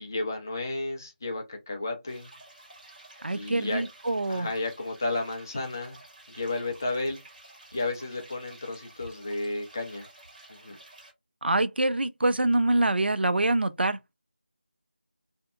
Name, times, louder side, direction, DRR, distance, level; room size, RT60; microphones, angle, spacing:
voice 1, 0.0-2.3 3.3-3.8 4.3-6.0 6.3-7.2 7.7-10.1 10.5-10.8, left 2 dB, 20° left, 0.4 m, -32 dB
sound 1, 2.1-11.1, right 2 dB, 45° right, 1.5 m, -51 dB
voice 2, 3.2-4.5 11.4-14.1, right 2 dB, 75° right, 0.3 m, -25 dB
2.7 x 2.1 x 2.3 m
figure-of-eight pair, 165°, 6 cm